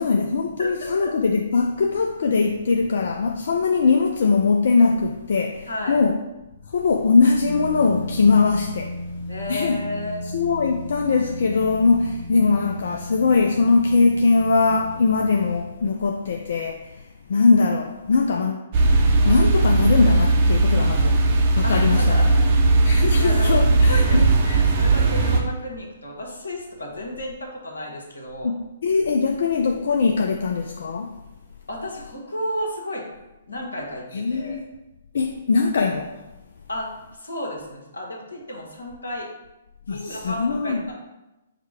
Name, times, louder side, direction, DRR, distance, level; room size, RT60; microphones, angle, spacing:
voice 1, 0.0-6.2 6.7-9.0 9.5-9.8 10.3-18.6 19.2-21.3 21.6-22.3 22.9-24.3 28.4-31.2 34.1-34.6 35.1-36.2 39.9-40.8, left 4 dB, 65° left, 0.3 m, -21 dB
voice 2, 0.6-1.1 5.7-6.0 9.3-10.3 21.6-22.4 23.2-23.6 23.9-28.5 31.7-33.0 33.5-34.6 36.7-36.9 37.2-39.3 39.9-40.9, left 1 dB, 85° left, 1.1 m, -32 dB
sound 1, 7.4-15.6, left 1 dB, 40° left, 0.8 m, -35 dB
sound 2, 18.7-25.4, right 2 dB, 45° right, 0.7 m, -18 dB
4.9 x 2.2 x 4.8 m
figure-of-eight pair, 130°, 0 cm